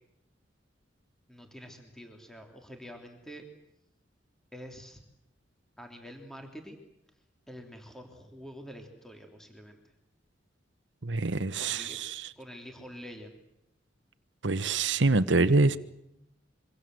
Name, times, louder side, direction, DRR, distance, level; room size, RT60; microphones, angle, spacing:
voice 1, 1.3-3.4 4.5-5.0 5.8-6.8 7.5-9.9 11.6-12.0 12.4-13.3, equal, 5° left, 3.3 m, -47 dB
voice 2, 11.0-12.3 14.4-15.8, right 3 dB, 70° right, 1.1 m, -25 dB
26.0 x 25.0 x 7.8 m
head